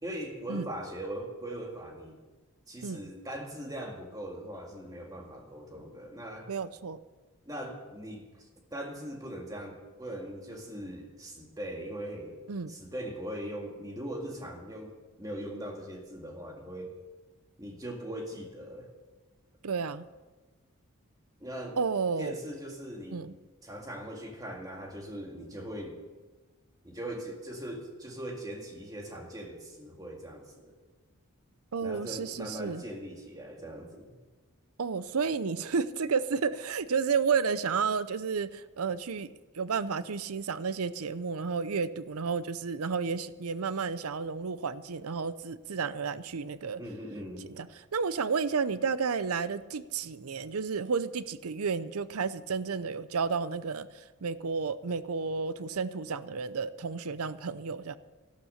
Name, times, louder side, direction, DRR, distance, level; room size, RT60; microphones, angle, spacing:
voice 1, 0.0-2.2 2.7-6.5 7.5-12.4 12.7-14.9 15.2-16.9 17.6-18.9 21.4-21.8 22.2-23.2 23.6-26.0 26.8-30.7 31.8-34.2 46.8-47.5, right 1 dB, 15° right, 1 dB, 2.0 m, -40 dB
voice 2, 6.5-7.0 12.5-12.7 19.6-20.1 21.8-22.3 23.1-23.4 31.7-32.8 34.8-46.8 47.5-58.0, right 5 dB, 85° right, 15 dB, 0.6 m, -32 dB
13.0 x 12.0 x 6.6 m, 1.2 s
head